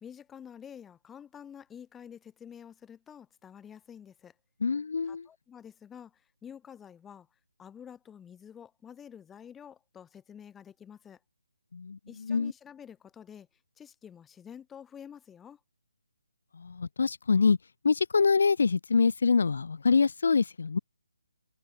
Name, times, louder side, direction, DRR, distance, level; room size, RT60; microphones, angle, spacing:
voice 1, 0.0-4.3 5.1-7.3 7.6-11.2 12.1-13.5 13.8-15.6, left 8 dB, 5° left, 0.7 m, -49 dB
voice 2, 4.6-5.3 11.7-12.5 16.6-17.6 17.8-20.8, left 5 dB, 60° left, 0.3 m, -25 dB
hypercardioid pair, 165°, 0 cm